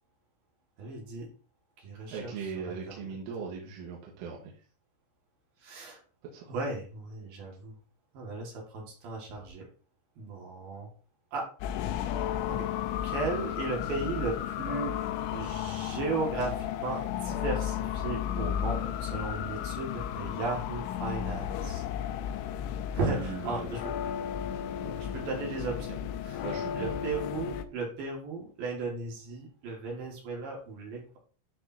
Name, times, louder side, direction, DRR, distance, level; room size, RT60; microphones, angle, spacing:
voice 1, 0.8-1.3 1.8-2.3 2.6-3.1 5.6-6.0 6.5-7.8 8.1-9.7 10.2-10.9 11.3-11.5 12.5-12.7 13.0-15.0 15.3-21.8 22.9-24.1 25.1-26.0 26.2-26.4 26.7-31.2, right 3 dB, 55° right, -1 dB, 3.2 m, -36 dB
voice 2, 2.1-4.5 6.3-6.5 23.1-23.7 24.8-25.0 26.4-26.9, right 5 dB, 80° right, -2 dB, 4.0 m, -39 dB
sound 1, 11.6-27.7, left 10 dB, 85° left, 2.7 m, -33 dB
13.0 x 5.2 x 2.8 m, 0.39 s
omnidirectional pair, 5.8 m